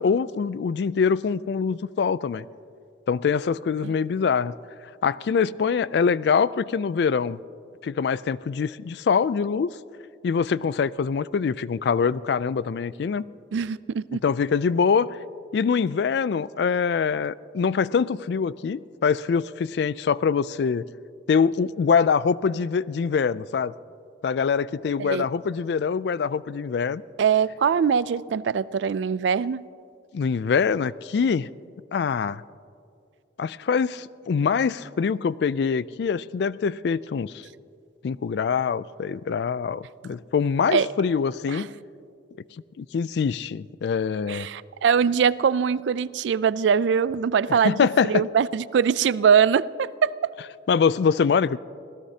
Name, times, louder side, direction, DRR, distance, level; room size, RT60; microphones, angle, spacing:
voice 1, 0.0-2.4 3.1-4.5 5.0-7.4 7.8-9.7 10.2-13.2 14.2-15.1 15.5-20.9 21.3-23.7 24.2-27.0 30.1-31.5 31.9-32.4 33.4-37.4 38.0-41.7 42.8-44.5 47.5-48.2 50.7-51.6, left 6 dB, 60° left, 19 dB, 0.3 m, -24 dB
voice 2, 13.5-14.2 25.0-25.3 27.2-29.6 40.7-40.9 41.5-41.7 44.3-50.3, right 7 dB, 75° right, 19 dB, 0.3 m, -22 dB
25.5 x 17.5 x 2.8 m, 2.4 s
head